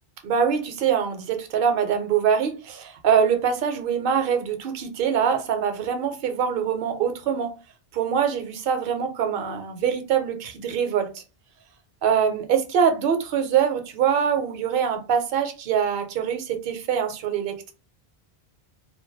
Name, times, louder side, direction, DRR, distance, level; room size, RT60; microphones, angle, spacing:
voice 1, 0.2-7.6 7.9-11.2 12.0-17.7, right 7 dB, 65° right, 0.7 m, -24 dB
2.2 x 2.2 x 2.5 m
omnidirectional pair, 1.1 m